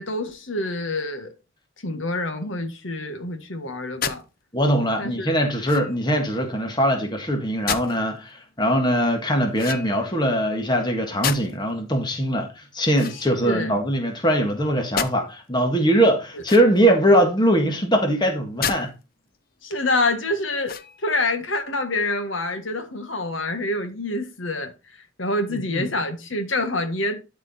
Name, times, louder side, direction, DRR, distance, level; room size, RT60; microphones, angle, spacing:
voice 1, 0.0-1.3 1.8-4.2 5.0-5.3 13.1-13.7 16.3-16.4 19.6-27.2, left 2 dB, 75° left, 1.6 m, -27 dB
sound 1, 4.0-4.2 5.6-6.1 7.7-8.0 9.5-10.2 11.2-11.7 12.9-13.8 15.0-15.2 16.4-17.0 18.6-18.8 19.3-19.4 20.6-21.1, left 7 dB, 50° left, 0.7 m, -30 dB
voice 2, 4.5-18.9 25.5-25.9, equal, 20° left, 1.6 m, -21 dB
12.5 x 4.7 x 4.2 m
head